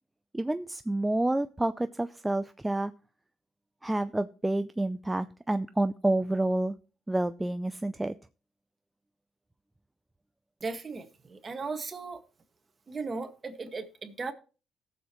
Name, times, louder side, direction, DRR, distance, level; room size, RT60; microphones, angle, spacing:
voice 1, 0.3-2.9 3.8-6.7 7.1-8.1, right 1 dB, 10° right, 0.5 m, -29 dB
voice 2, 10.6-12.2 12.9-14.3, right 4 dB, 35° right, 1.8 m, -37 dB
18.0 x 7.3 x 3.1 m
cardioid pair, 85°, 0 cm